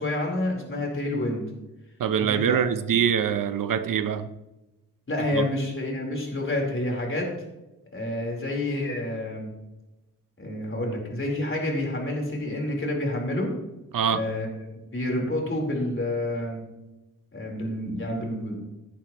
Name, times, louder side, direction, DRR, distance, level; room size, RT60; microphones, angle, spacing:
voice 1, 0.0-1.4 2.3-2.6 3.9-4.0 5.1-7.3 7.9-9.5 10.4-13.5 14.1-14.5 14.8-16.6 17.3-18.6, left 1 dB, 40° left, -1 dB, 4.3 m, -28 dB
voice 2, 2.0-4.3 5.3-5.4 13.9-14.2, right 8 dB, 85° right, 11 dB, 0.9 m, -24 dB
16.0 x 10.0 x 3.1 m, 0.99 s
wide cardioid pair, 90°, 32 cm